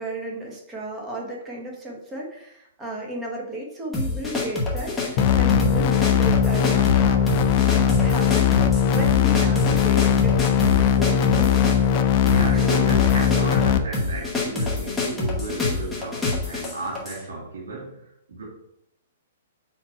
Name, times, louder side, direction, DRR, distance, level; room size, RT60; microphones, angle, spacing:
voice 1, 0.0-11.6 12.5-12.8, right 1 dB, 10° right, -2 dB, 1.2 m, -34 dB
sound 1, 3.9-17.2, left 3 dB, 5° left, 1.0 m, -27 dB
sound 2, 5.2-13.8, left 8 dB, 35° left, 0.4 m, -19 dB
voice 2, 12.2-18.0 18.3-18.4, right 3 dB, 85° right, -3 dB, 2.1 m, -33 dB
5.0 x 4.4 x 4.4 m, 0.78 s
hypercardioid pair, 165°, 0 cm